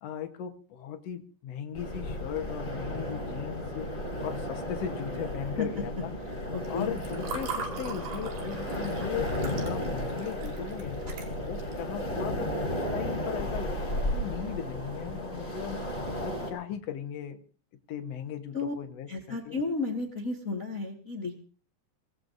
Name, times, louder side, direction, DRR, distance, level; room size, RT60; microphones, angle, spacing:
voice 1, 0.0-3.9 4.2-6.1 6.7-11.0 11.3-15.8 16.2-17.4 17.9-19.6, left 9 dB, 65° left, 5 dB, 1.6 m, -38 dB
sound 1, 1.7-16.5, left 1 dB, 20° left, 4.4 m, -34 dB
voice 2, 6.5-7.0 18.5-18.7 19.1-21.3, left 3 dB, 45° left, 3 dB, 1.0 m, -33 dB
Water / Fill (with liquid), 6.7-11.8, right 5 dB, 60° right, 4.3 m, -41 dB
24.5 x 18.0 x 2.7 m, 0.37 s
omnidirectional pair, 4.8 m